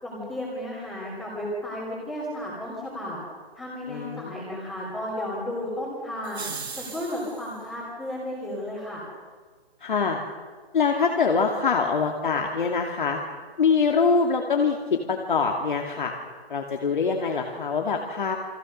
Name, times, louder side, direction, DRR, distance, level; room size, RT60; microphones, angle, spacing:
voice 1, 0.0-3.2 3.5-6.5 6.8-9.0, left 1 dB, 5° left, -6 dB, 2.9 m, -33 dB
voice 2, 3.9-4.7 9.8-10.2 10.7-13.2 13.6-16.1 16.5-18.4, left 5 dB, 50° left, 2 dB, 2.6 m, -24 dB
sound 1, 6.2-7.6, right 5 dB, 80° right, 5.9 m, -37 dB
29.5 x 22.5 x 6.7 m, 1.5 s
hypercardioid pair, 170°, 32 cm